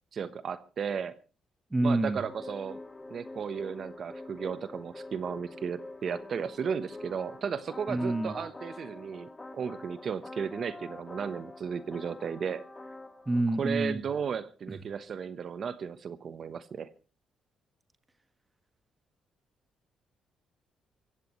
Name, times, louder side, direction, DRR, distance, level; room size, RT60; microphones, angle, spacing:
voice 1, 0.1-1.1 1.8-2.8 3.1-12.6 13.6-16.9, right 6 dB, 55° right, 13 dB, 1.1 m, -35 dB
voice 2, 1.7-2.2 7.9-8.3 13.3-14.0 14.7-14.8, right 2 dB, 15° right, 9 dB, 1.5 m, -28 dB
sound 1, 2.2-13.4, left 2 dB, 20° left, 2.1 m, -45 dB
25.0 x 15.5 x 3.2 m, 0.35 s
cardioid pair, 90°, 0 cm